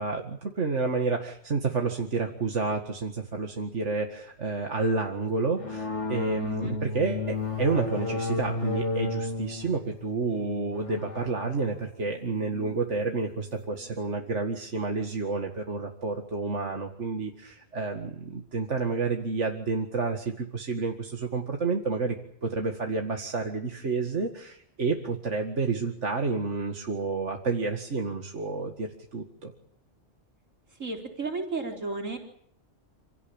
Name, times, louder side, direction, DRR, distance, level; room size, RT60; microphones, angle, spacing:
voice 1, 0.0-22.2 22.4-29.5, right 4 dB, 65° right, 3 dB, 2.3 m, -30 dB
sound 1, 5.6-13.7, left 3 dB, 65° left, 2.5 m, -33 dB
voice 2, 6.4-6.8 30.8-32.2, right 3 dB, 80° right, 2 dB, 4.9 m, -33 dB
27.5 x 17.5 x 8.9 m, 0.69 s
omnidirectional pair, 1.3 m